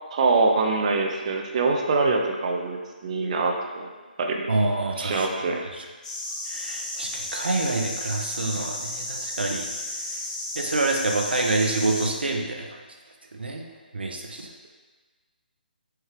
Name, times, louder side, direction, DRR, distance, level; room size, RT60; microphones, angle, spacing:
voice 1, 0.1-3.9 4.2-4.5 5.0-5.7, right 3 dB, 45° right, 2 dB, 0.5 m, -24 dB
voice 2, 4.5-5.3 5.7-5.8 6.5-9.7 10.6-12.8 13.3-13.6 13.9-14.5, right 2 dB, 85° right, 2 dB, 0.6 m, -27 dB
sound 1, 6.0-12.1, left 1 dB, 45° left, 1.2 m, -33 dB
4.4 x 2.3 x 3.3 m, 1.4 s
figure-of-eight pair, 150°, 5 cm